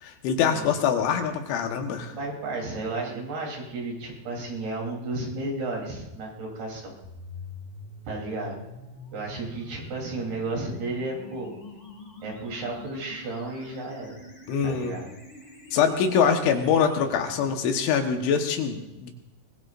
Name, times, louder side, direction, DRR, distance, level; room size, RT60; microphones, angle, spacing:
voice 1, 0.0-2.1 14.5-14.9 15.7-19.1, left 7 dB, 80° left, 4 dB, 3.6 m, -24 dB
voice 2, 2.1-7.0 8.1-8.6 9.1-11.5 12.2-14.2 14.6-15.1, right 2 dB, 60° right, -2 dB, 5.2 m, -33 dB
sound 1, 7.0-17.0, left 2 dB, 30° left, 1.1 m, -45 dB
24.5 x 21.0 x 2.5 m, 0.98 s
omnidirectional pair, 5.4 m